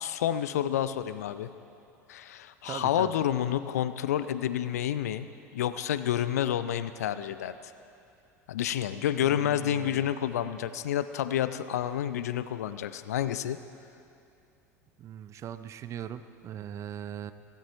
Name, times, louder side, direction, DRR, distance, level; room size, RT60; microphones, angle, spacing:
voice 1, 0.0-1.5 2.1-5.3 5.5-7.6 8.5-13.6, left 10 dB, 65° left, 13 dB, 0.5 m, -29 dB
voice 2, 2.7-3.1 9.2-10.1 15.0-17.3, right 10 dB, 35° right, 13 dB, 0.5 m, -40 dB
16.5 x 15.5 x 3.0 m, 2.6 s
figure-of-eight pair, 75°, 9 cm